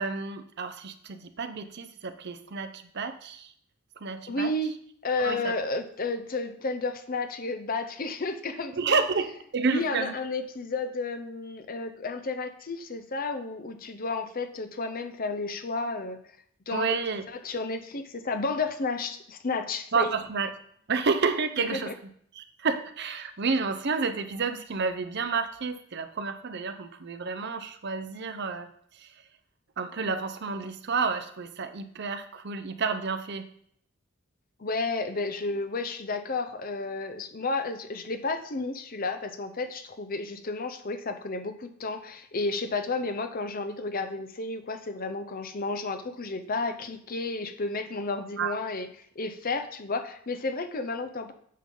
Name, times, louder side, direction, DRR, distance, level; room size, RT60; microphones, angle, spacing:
voice 1, 0.0-3.5 4.0-4.5 5.2-5.5 8.8-10.1 16.7-17.2 19.9-20.5 20.9-21.9 22.3-28.7 29.0-29.1 29.8-33.4 48.4-48.5, right 4 dB, 50° right, 9 dB, 0.6 m, -30 dB
voice 2, 4.3-4.7 5.0-9.0 9.7-16.2 16.7-17.0 17.3-20.1 21.7-21.9 34.6-48.9 49.2-51.3, left 3 dB, 40° left, 8 dB, 0.7 m, -32 dB
9.3 x 5.6 x 3.8 m, 0.64 s
head